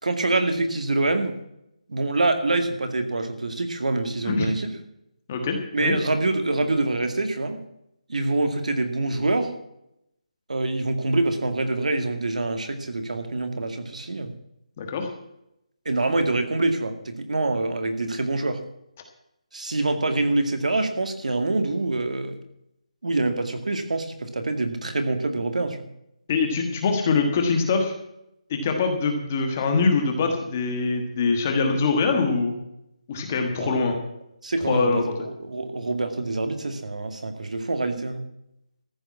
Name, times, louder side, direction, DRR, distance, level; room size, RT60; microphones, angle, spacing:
voice 1, 0.0-1.4 1.9-4.7 5.7-7.6 8.1-9.5 10.5-14.3 15.9-18.6 19.5-22.4 23.0-25.9 33.6-33.8 34.4-38.2, right 2 dB, 75° right, 7 dB, 2.2 m, -25 dB
voice 2, 5.3-6.0 14.8-15.1 26.3-27.9 28.5-32.5 33.1-34.0 34.6-35.1, left 4 dB, 15° left, 4 dB, 1.4 m, -23 dB
14.0 x 7.0 x 8.5 m, 0.81 s
hypercardioid pair, 180°, 4 cm